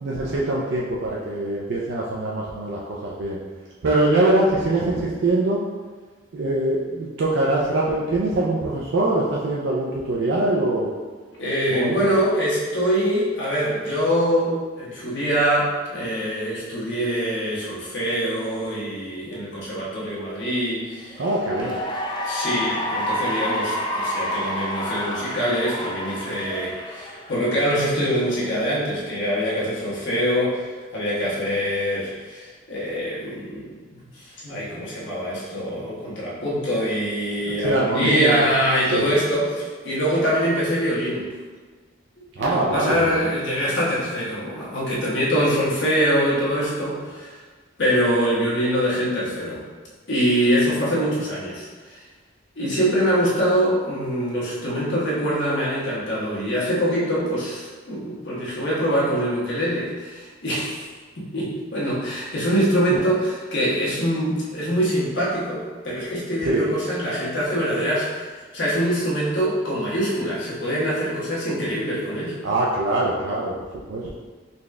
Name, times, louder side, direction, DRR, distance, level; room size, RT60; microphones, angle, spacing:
voice 1, 0.0-3.4 3.8-5.6 6.3-10.9 11.7-12.0 21.2-21.8 37.4-38.4 38.9-39.1 42.4-43.1 62.9-63.0 66.4-66.7 72.4-73.6 73.9-74.1, right 2 dB, 65° right, -4 dB, 0.4 m, -23 dB
voice 2, 11.4-21.2 22.2-33.8 34.1-41.3 42.4-47.3 47.8-49.6 50.1-52.0 52.5-60.9 61.2-72.4, equal, 65° left, -7 dB, 1.1 m, -24 dB
Cheering / Applause, 21.1-27.8, left 1 dB, 25° left, 0.4 m, -29 dB
4.0 x 2.4 x 3.2 m, 1.4 s
head